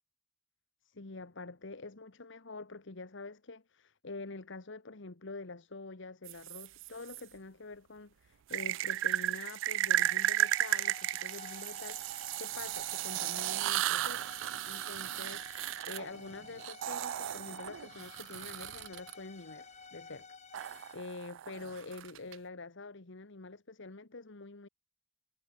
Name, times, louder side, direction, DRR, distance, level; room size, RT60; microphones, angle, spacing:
voice 1, 0.8-14.3 14.6-24.7, left 3 dB, 65° left, 1.4 m, -46 dB
sound 1, 6.2-7.2 8.5-19.1 20.5-22.3, right 13 dB, 65° right, 0.3 m, -34 dB
sound 2, 9.9-21.0, left 5 dB, 35° left, 6.2 m, -53 dB
head